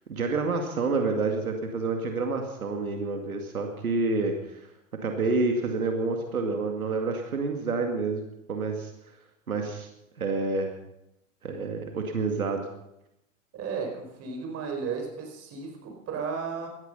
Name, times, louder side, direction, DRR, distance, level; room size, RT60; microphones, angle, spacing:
voice 1, 0.1-4.6 5.0-8.9 9.5-9.9 10.2-10.7 11.4-12.7, right 3 dB, 90° right, 3 dB, 2.3 m, -28 dB
voice 2, 13.5-16.7, right 5 dB, 35° right, 3 dB, 5.2 m, -34 dB
17.5 x 13.5 x 5.6 m, 0.83 s
hypercardioid pair, 105°, 42 cm